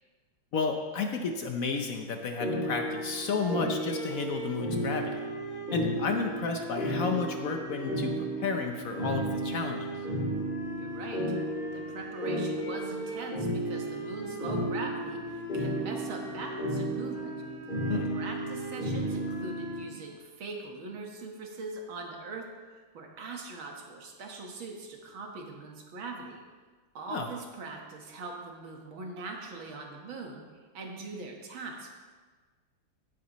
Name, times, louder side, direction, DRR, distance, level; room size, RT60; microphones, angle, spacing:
voice 1, 0.5-5.3 5.7-10.0 17.9-18.1 27.1-27.3, left 4 dB, 70° left, 4 dB, 0.8 m, -32 dB
sound 1, 2.4-19.8, right 1 dB, 20° left, 3.3 m, -33 dB
voice 2, 10.8-11.2 11.7-17.3 18.1-22.5 22.7-26.4 26.9-30.4 30.7-31.9, right 3 dB, 70° right, 1 dB, 2.1 m, -41 dB
16.5 x 8.2 x 3.1 m, 1.4 s
omnidirectional pair, 2.4 m